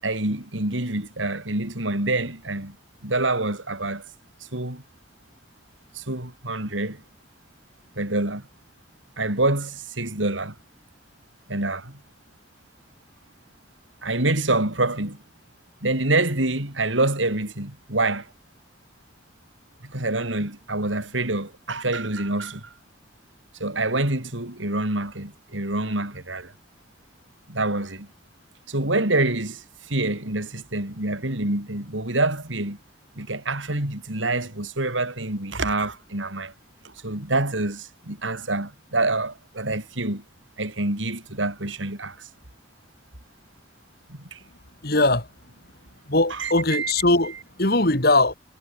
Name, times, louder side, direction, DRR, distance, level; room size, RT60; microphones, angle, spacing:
voice 1, 0.0-2.8 3.0-4.1 4.5-4.8 5.9-7.0 8.0-8.4 9.2-10.6 11.5-12.0 14.0-15.2 15.8-18.3 19.9-22.7 23.6-26.5 27.5-28.1 28.7-32.8 33.2-36.5 36.8-40.2 40.6-42.3 44.1-44.4 46.3-46.9, right 2 dB, 85° right, 5.3 m, -26 dB
voice 2, 44.8-45.3 46.1-48.3, left 2 dB, 55° left, 3.3 m, -20 dB
head